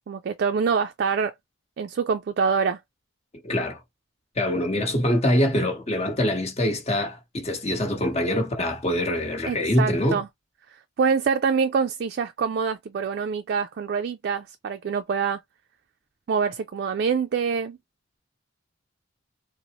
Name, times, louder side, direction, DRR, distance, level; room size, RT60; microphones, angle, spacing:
voice 1, 0.1-1.3 1.8-2.8 9.5-10.3 11.0-15.4 16.3-17.8, right 5 dB, 50° right, 0.3 m, -25 dB
voice 2, 3.4-3.8 4.4-10.2, left 1 dB, 30° left, 1.0 m, -24 dB
3.9 x 2.0 x 2.8 m
head